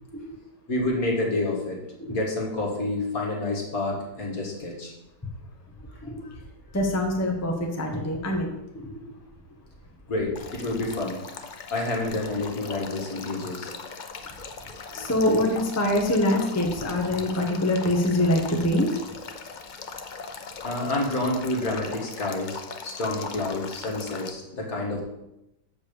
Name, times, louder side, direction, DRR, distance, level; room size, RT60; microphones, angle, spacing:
voice 1, 0.7-1.8 2.1-4.9 10.1-11.2 11.7-13.7 20.6-25.0, left 2 dB, 55° left, -2 dB, 2.1 m, -28 dB
voice 2, 6.7-9.1 14.9-18.9, left 1 dB, 10° left, 1 dB, 1.0 m, -24 dB
Male speech man speaking / Stream / Trickle dribble, 10.3-24.3, left 5 dB, 80° left, 0.4 m, -40 dB
6.9 x 5.3 x 6.8 m, 0.89 s
omnidirectional pair, 1.8 m